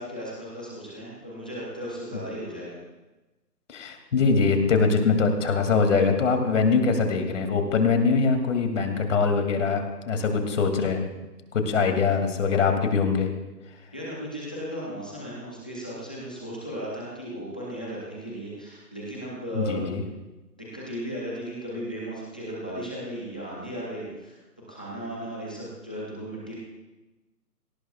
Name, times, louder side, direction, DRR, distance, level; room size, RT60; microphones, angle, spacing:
voice 1, 0.0-2.8 13.9-19.9 20.6-24.4 24.7-26.5, equal, 5° left, -6 dB, 0.6 m, -36 dB
voice 2, 3.7-11.0 11.5-13.3 19.6-20.0, left 4 dB, 50° left, 5 dB, 2.4 m, -23 dB
28.0 x 18.0 x 2.3 m, 1.1 s
hypercardioid pair, 155°, 48 cm